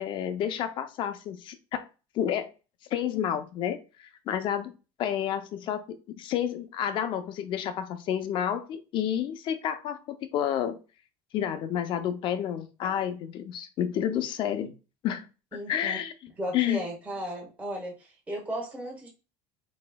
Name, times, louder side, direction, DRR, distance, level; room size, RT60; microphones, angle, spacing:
voice 1, 0.0-1.9 2.1-2.5 2.9-3.8 4.3-4.7 5.0-5.8 6.2-10.8 11.3-14.7 15.0-15.3 15.5-16.1 16.5-16.8, left 10 dB, 40° left, 0.5 m, -30 dB
voice 2, 15.5-16.0 16.4-19.1, right 1 dB, 10° right, 1.2 m, -35 dB
4.3 x 4.1 x 2.2 m
cardioid pair, 160°, 13 cm